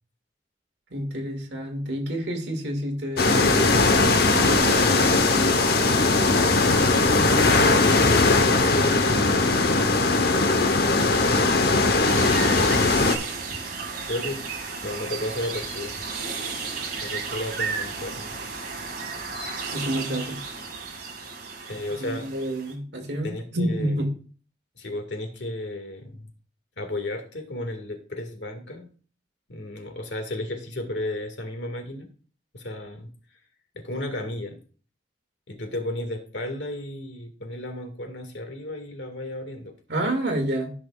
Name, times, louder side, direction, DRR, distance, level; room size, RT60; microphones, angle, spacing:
voice 1, 0.9-5.5 19.7-20.4 22.0-24.1 39.9-40.7, right 1 dB, 75° right, 1.9 m, -29 dB
sound 1, 3.2-13.2, left 3 dB, 60° left, 0.9 m, -19 dB
voice 2, 6.4-9.8 14.0-14.4 14.8-16.0 17.0-18.4 21.7-22.3 23.2-24.0 24.8-26.3 26.8-28.9 29.5-32.1 32.5-33.1 33.7-34.6 35.5-39.7, left 1 dB, 85° left, 1.8 m, -34 dB
sound 2, 12.1-22.7, right 4 dB, 55° right, 2.0 m, -33 dB
13.5 x 6.0 x 2.3 m
head